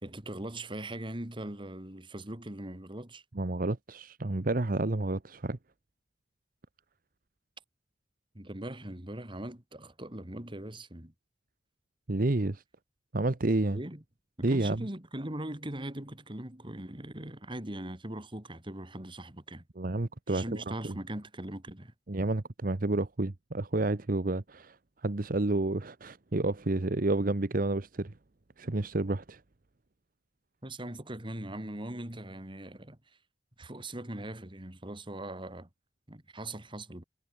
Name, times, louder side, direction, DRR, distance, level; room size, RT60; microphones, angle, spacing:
voice 1, 0.0-3.2 8.3-11.1 13.7-14.0 14.4-19.6 20.3-21.9 30.6-33.0 33.6-35.7 36.1-37.0, right 1 dB, 30° right, 2.9 m, -40 dB
voice 2, 3.3-5.6 12.1-12.6 13.1-13.8 14.4-14.9 19.8-21.0 22.1-24.8 25.0-28.1 28.6-29.4, right 2 dB, 50° right, 0.9 m, -30 dB
head